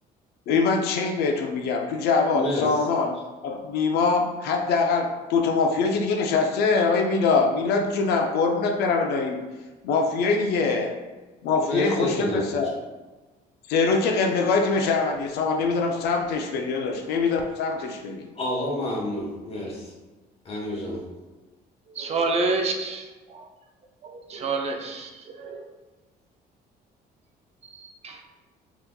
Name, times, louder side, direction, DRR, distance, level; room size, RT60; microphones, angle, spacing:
voice 1, 0.5-3.1 3.4-9.4 9.8-11.0 11.4-12.7 13.7-18.3, left 4 dB, 75° left, 2 dB, 0.4 m, -23 dB
voice 2, 2.3-2.8 11.6-12.4 18.3-19.9 20.4-21.0, left 1 dB, 35° left, -3 dB, 1.0 m, -28 dB
voice 3, 22.0-23.5 24.0-25.7 27.7-28.2, right 3 dB, 40° right, 4 dB, 0.4 m, -29 dB
3.4 x 2.9 x 2.2 m, 1.2 s
cardioid pair, 110°, 17 cm